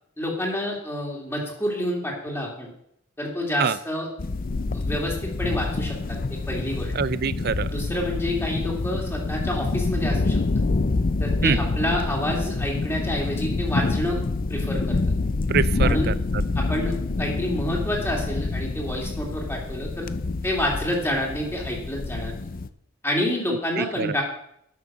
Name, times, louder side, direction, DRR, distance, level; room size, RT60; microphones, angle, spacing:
voice 1, 0.2-2.7 3.2-4.1 4.7-6.9 7.7-10.4 11.2-14.2 14.5-15.0 15.7-16.1 16.5-20.1 20.4-22.4 23.0-24.2, left 1 dB, 10° left, -1 dB, 2.7 m, -28 dB
sound 1, 4.2-22.7, left 3 dB, 45° left, 0.5 m, -27 dB
voice 2, 6.9-7.7 11.4-11.6 15.5-16.4 23.8-24.2, right 6 dB, 50° right, 17 dB, 0.4 m, -25 dB
11.5 x 6.9 x 6.2 m, 0.74 s
head